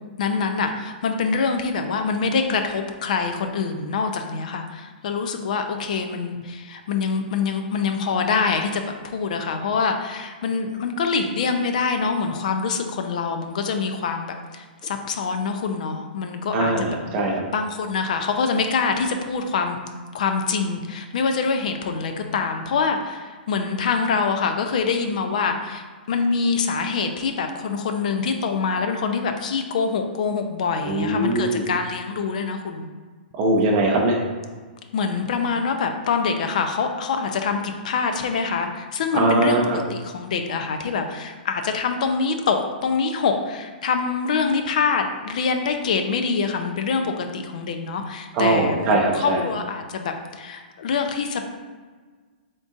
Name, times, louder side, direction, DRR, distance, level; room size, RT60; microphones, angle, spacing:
voice 1, 0.2-16.9 17.5-19.8 20.1-32.9 34.9-51.4, left 5 dB, 50° left, 6 dB, 0.4 m, -25 dB
voice 2, 16.5-17.4 30.9-31.7 33.4-34.2 39.1-39.6 48.3-49.4, right 2 dB, 20° right, -1 dB, 0.5 m, -21 dB
3.7 x 2.4 x 3.8 m, 1.4 s
hypercardioid pair, 170°, 5 cm